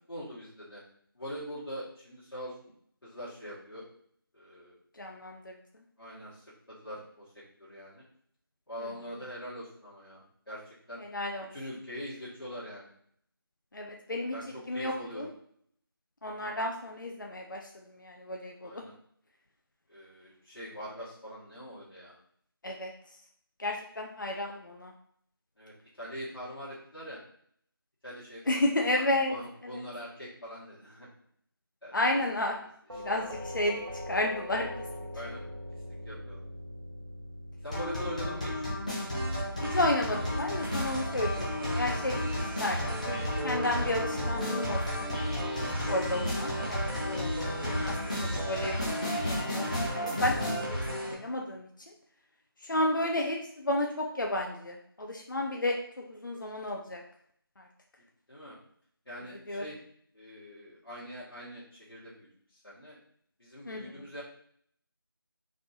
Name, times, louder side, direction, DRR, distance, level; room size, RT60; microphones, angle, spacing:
voice 1, 0.1-0.8 1.2-2.5 3.0-3.9 4.3-4.8 6.0-8.0 8.7-10.2 10.5-11.0 11.5-12.9 14.3-15.3 18.6-18.9 19.9-22.2 25.6-27.2 28.0-31.1 31.8-31.9 32.6-32.7 32.9-33.2 35.1-35.5 36.1-36.4 37.6-38.5 58.3-58.6 59.1-59.8 60.1-63.0 63.4-64.2, equal, 70° left, -9 dB, 1.9 m, -43 dB
voice 2, 5.0-5.5 11.1-11.5 13.7-14.3 14.7-15.3 16.2-17.6 18.0-18.8 22.6-22.9 23.6-24.9 28.5-29.3 31.9-32.6 33.0-33.8 34.1-34.7 39.7-42.2 42.6-45.0 45.5-47.3 47.5-47.9 48.2-49.6 50.0-50.3 50.7-51.7 52.7-55.8 56.1-57.0 59.5-59.6 63.7-63.9, left 1 dB, 55° left, 1 dB, 0.6 m, -32 dB
Doorbell, 32.9-41.7, left 1 dB, 90° right, 1.6 m, -43 dB
sound 1, 37.7-50.6, left 1 dB, 20° left, 0.9 m, -34 dB
sound 2, 39.1-51.1, right 1 dB, 65° right, 1.4 m, -35 dB
4.2 x 4.2 x 2.8 m, 0.66 s
figure-of-eight pair, 175°, 13 cm